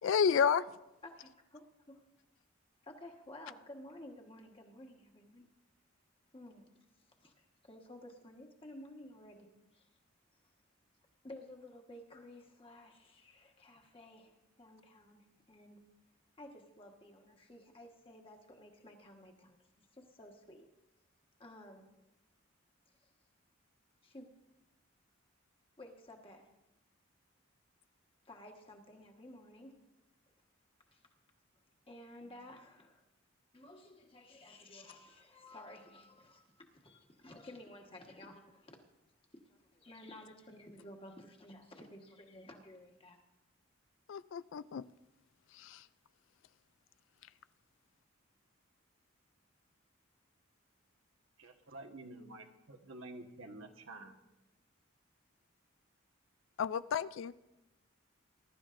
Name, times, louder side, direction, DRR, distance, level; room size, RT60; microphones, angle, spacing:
voice 1, 0.0-0.6 44.1-44.8 45.5-45.8 56.6-57.4, left 7 dB, 65° left, 16 dB, 0.3 m, -31 dB
voice 2, 1.0-1.6 2.9-5.5 6.3-6.6 7.2-9.5 9.7-9.9 11.2-15.8 16.4-20.7 21.4-21.9 24.0-24.3 25.8-26.5 28.2-29.8 30.9-31.0 31.9-33.0 33.5-38.8 39.7-43.2, left 1 dB, 25° left, 2 dB, 1.4 m, -53 dB
voice 3, 51.4-54.1, right 2 dB, 80° right, 2 dB, 1.4 m, -50 dB
21.0 x 11.5 x 2.6 m, 0.98 s
head